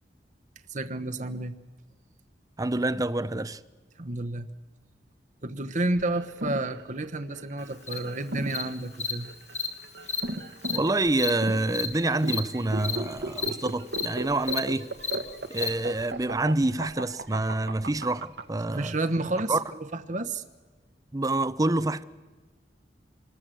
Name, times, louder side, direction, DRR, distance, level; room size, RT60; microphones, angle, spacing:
voice 1, 0.7-1.6 4.0-4.5 5.4-9.3 18.7-19.6 19.9-20.4, right 2 dB, 45° right, 1.2 m, -30 dB
voice 2, 2.6-3.6 10.7-14.9 15.5-18.9 19.5-19.6 21.1-22.0, right 2 dB, 20° right, 0.7 m, -27 dB
sound 1, 6.0-18.4, right 2 dB, 70° right, 1.5 m, -36 dB
Cricket, 7.9-8.0 8.5-8.6 9.0-9.1 9.5-9.7 10.0-10.2 10.6-10.8 11.2-11.3 11.7-11.9 12.2-12.4 12.8-13.0 13.3-13.5 13.9-14.1 14.4-14.6 15.0-15.2 15.5-15.7, left 6 dB, 40° left, 2.4 m, -30 dB
26.0 x 20.5 x 7.8 m
head